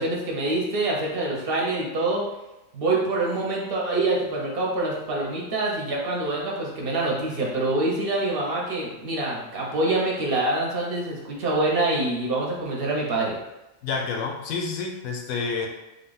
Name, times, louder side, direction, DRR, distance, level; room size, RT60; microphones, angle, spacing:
voice 1, 0.0-2.2 2.7-13.4, right 2 dB, 50° right, -2 dB, 0.9 m, -25 dB
voice 2, 13.8-15.7, left 4 dB, 80° left, 2 dB, 1.1 m, -29 dB
3.4 x 2.3 x 3.8 m, 0.98 s
omnidirectional pair, 1.5 m